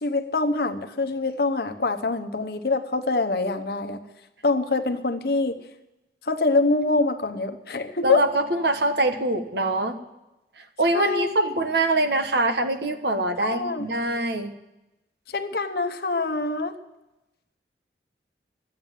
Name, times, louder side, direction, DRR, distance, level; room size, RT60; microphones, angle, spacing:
voice 1, 0.0-4.0 4.4-5.6 6.3-8.2 10.9-11.5 13.4-13.9 15.3-16.7, left 3 dB, 65° left, 6 dB, 1.0 m, -25 dB
voice 2, 8.0-9.9 10.8-14.5, right 2 dB, 75° right, 7 dB, 1.3 m, -24 dB
12.5 x 8.6 x 9.2 m, 0.95 s
head